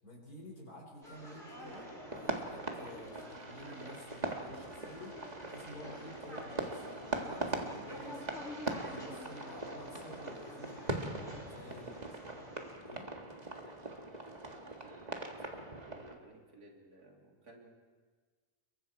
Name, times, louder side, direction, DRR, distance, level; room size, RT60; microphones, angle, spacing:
voice 1, 0.0-11.1 11.5-12.0 12.7-13.1, equal, 75° left, -1 dB, 5.3 m, -51 dB
sound 1, 1.0-12.7, left 1 dB, 50° left, 7.5 m, -50 dB
sound 2, 1.6-16.1, right 2 dB, 25° right, 1.8 m, -41 dB
voice 2, 14.2-15.3 15.7-17.7, right 2 dB, 80° right, 1 dB, 3.4 m, -57 dB
29.0 x 23.0 x 4.7 m, 1.5 s
omnidirectional pair, 1.6 m